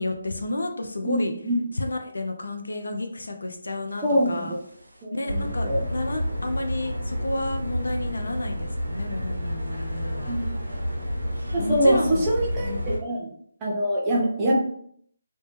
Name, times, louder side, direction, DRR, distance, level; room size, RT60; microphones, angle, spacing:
voice 1, 0.0-1.3 1.7-4.5 5.1-10.4 11.6-12.3 12.6-13.0, left 2 dB, 75° left, 4 dB, 0.4 m, -31 dB
voice 2, 1.0-1.6 4.0-4.6 5.0-5.8 10.3-10.5 11.5-13.3 13.6-14.6, equal, 20° right, -4 dB, 0.6 m, -24 dB
sound 1, 4.0-4.4 4.8-4.9 5.3-13.0, equal, 85° right, 0.5 m, -30 dB
2.1 x 2.0 x 3.0 m, 0.65 s
figure-of-eight pair, 150°, 0 cm